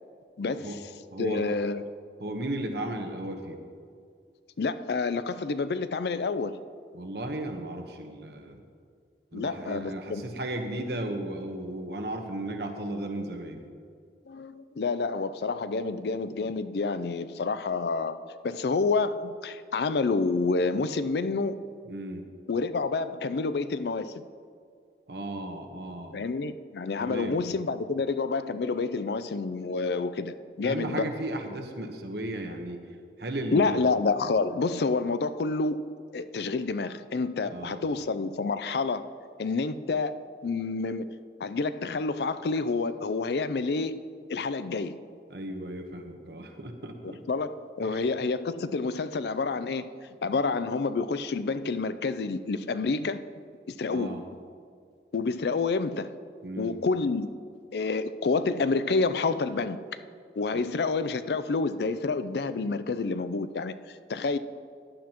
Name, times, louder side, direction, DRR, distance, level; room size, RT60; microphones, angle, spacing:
voice 1, 0.4-0.8 1.2-1.8 4.6-6.5 9.3-10.2 14.3-18.2 18.4-21.6 22.5-24.2 26.1-31.1 33.5-35.8 36.1-39.0 39.4-40.2 40.4-41.1 41.4-44.0 44.3-45.0 47.0-49.9 50.2-53.2 53.7-54.2 55.1-56.1 56.6-57.3 57.7-59.8 60.4-64.4, left 4 dB, 65° left, 12 dB, 0.4 m, -28 dB
voice 2, 1.1-1.6 2.2-3.6 6.9-8.6 9.3-13.6 21.9-22.3 25.1-26.2 27.0-27.4 30.6-32.8 33.2-33.8 37.5-37.9 45.3-47.2 47.8-48.0 53.9-54.2 56.4-56.8 60.5-60.6, right 1 dB, 65° right, 4 dB, 1.1 m, -35 dB
15.0 x 10.5 x 3.0 m, 2.2 s
head